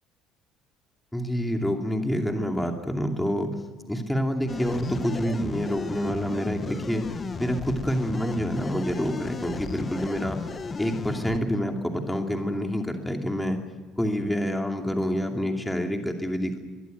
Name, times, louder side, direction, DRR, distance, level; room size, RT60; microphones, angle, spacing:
voice 1, 1.1-3.5 3.9-7.1 7.4-10.4 10.8-13.6 14.0-16.6, equal, 5° left, 3 dB, 2.7 m, -27 dB
sound 1, 4.5-11.4, left 4 dB, 20° left, 0.9 m, -35 dB
22.5 x 22.5 x 9.3 m, 1.4 s
cardioid pair, 165°, 0 cm